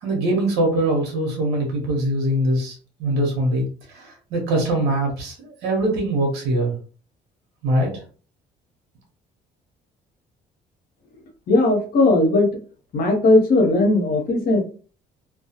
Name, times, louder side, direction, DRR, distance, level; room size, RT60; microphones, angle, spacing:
voice 1, 0.0-6.7 7.6-8.0, right 1 dB, 80° right, 0 dB, 0.9 m, -22 dB
voice 2, 11.5-12.6 12.9-14.6, left 2 dB, 60° left, 2 dB, 0.9 m, -17 dB
2.2 x 2.2 x 2.8 m, 0.38 s
cardioid pair, 110°, 17 cm